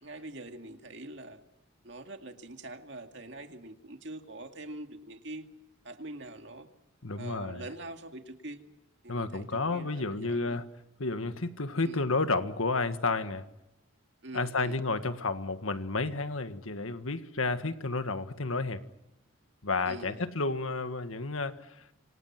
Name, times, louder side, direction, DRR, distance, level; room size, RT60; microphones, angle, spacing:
voice 1, 0.0-1.4 1.8-5.5 5.8-6.7 7.2-8.6 9.0-10.6 11.8-12.0 14.2-14.8 19.9-20.2, right 1 dB, 60° right, 2.3 m, -44 dB
voice 2, 7.0-7.7 9.1-10.7 11.0-13.5 14.3-18.8 19.6-21.8, left 3 dB, 85° left, 1.7 m, -31 dB
27.0 x 26.5 x 6.0 m
head